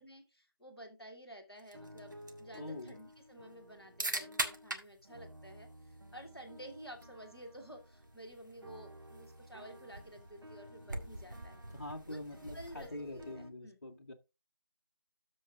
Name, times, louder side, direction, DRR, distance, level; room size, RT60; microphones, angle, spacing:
voice 1, 0.0-11.6 12.0-12.2 12.5-13.3 13.6-13.8, equal, ahead, 0.6 m, -52 dB
sound 1, 1.6-13.5, right 2 dB, 50° right, 1.8 m, -45 dB
sound 2, 1.7-4.8 5.0-13.5, equal, 75° right, 1.5 m, -55 dB
voice 2, 2.6-3.0 11.7-14.1, left 1 dB, 35° left, 1.5 m, -44 dB
13.5 x 4.5 x 3.7 m
figure-of-eight pair, 165°, 13 cm